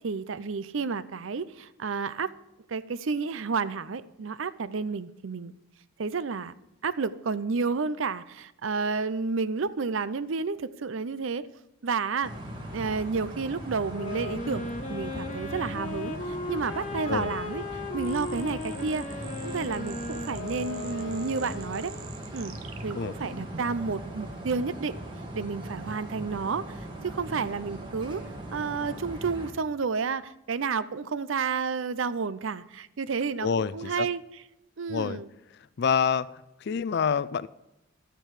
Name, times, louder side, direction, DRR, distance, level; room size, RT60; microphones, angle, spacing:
voice 1, 0.0-2.3 2.7-5.5 6.0-6.5 6.8-11.5 11.8-12.3 12.7-19.1 19.4-21.9 22.3-22.6 22.8-25.0 25.3-28.2 28.5-34.2 34.8-35.3, right 5 dB, 70° right, 16 dB, 0.6 m, -31 dB
sound 1, 12.2-29.5, right 1 dB, 25° right, 1.7 m, -39 dB
Wind instrument woodwind instrument, 13.8-22.1, left 2 dB, 35° left, 1.3 m, -37 dB
sound 2, 18.0-23.8, right 6 dB, 85° right, 1.2 m, -46 dB
voice 2, 33.4-34.1 34.9-35.2 35.8-36.3 36.6-37.5, left 6 dB, 55° left, 17 dB, 0.4 m, -27 dB
12.0 x 9.0 x 4.9 m, 0.91 s
head